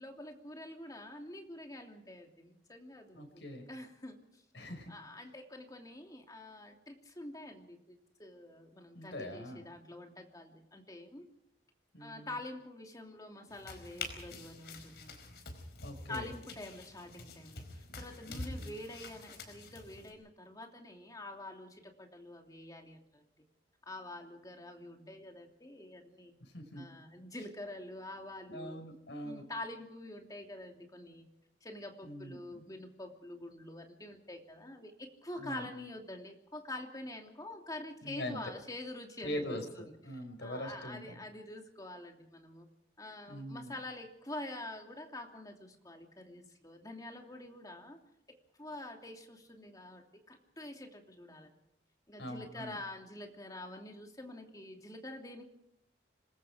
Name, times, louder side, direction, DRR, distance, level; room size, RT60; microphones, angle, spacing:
voice 1, 0.0-3.3 3.7-4.4 4.9-11.3 12.0-15.4 16.1-23.2 23.9-26.4 26.8-28.8 29.2-31.3 31.6-42.7 43.0-48.0 48.6-51.5 52.1-55.4, left 1 dB, 20° left, 3 dB, 2.9 m, -46 dB
voice 2, 3.1-3.7 4.5-4.9 8.9-9.6 11.9-12.4 15.8-16.3 18.3-18.7 26.4-26.9 28.5-29.4 32.0-32.6 35.4-35.7 38.0-38.4 39.2-41.2 43.3-43.8 52.2-52.8, equal, 85° left, 5 dB, 5.5 m, -42 dB
sound 1, 13.5-20.1, left 3 dB, 65° left, 4.7 m, -46 dB
26.5 x 20.5 x 5.0 m, 0.75 s
head